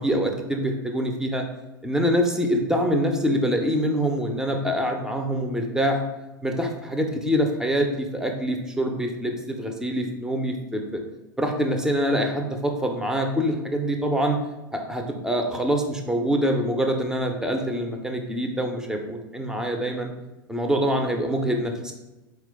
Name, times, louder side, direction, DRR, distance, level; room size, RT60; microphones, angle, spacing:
voice 1, 0.0-1.4 1.8-6.0 6.4-11.0 11.4-14.4 14.7-20.1 20.5-21.9, equal, 5° right, 3 dB, 0.5 m, -25 dB
4.3 x 2.2 x 3.4 m, 1.1 s
figure-of-eight pair, 90°, 12 cm